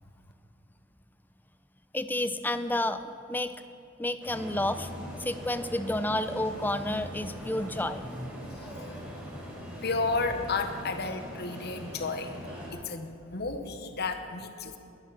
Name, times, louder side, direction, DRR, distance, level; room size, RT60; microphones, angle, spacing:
voice 1, 1.9-3.5 4.0-4.9 5.2-8.3, left 1 dB, 10° left, 11 dB, 0.6 m, -30 dB
sound 1, 4.2-12.7, equal, 10° right, 4.9 m, -41 dB
voice 2, 8.6-8.9 9.8-12.3 12.7-14.8, left 3 dB, 50° left, 7 dB, 1.2 m, -32 dB
21.5 x 10.5 x 6.0 m, 2.8 s
head